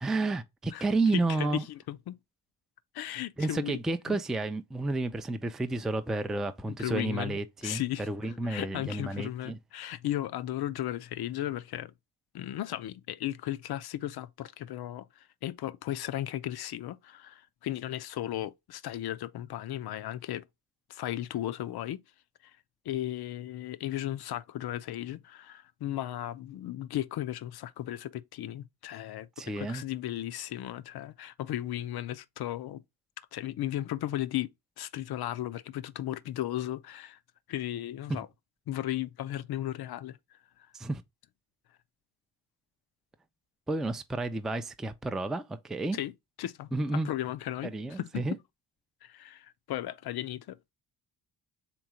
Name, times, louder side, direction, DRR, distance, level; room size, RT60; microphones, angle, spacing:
voice 1, 0.0-1.6 3.4-7.8 8.1-9.6 29.4-29.8 38.1-38.2 40.7-41.0 43.7-46.0 46.7-47.1 47.7-48.4, right 2 dB, ahead, 0.3 m, -31 dB
voice 2, 1.1-2.2 2.9-3.8 4.1-4.2 6.8-11.9 12.3-20.4 20.9-22.0 22.9-29.3 29.6-32.8 33.3-34.5 34.8-37.2 37.5-38.3 38.7-40.2 45.9-46.1 46.4-48.2 49.0-50.7, left 13 dB, 60° left, 0.5 m, -35 dB
3.5 x 3.0 x 4.8 m
cardioid pair, 70°, 44 cm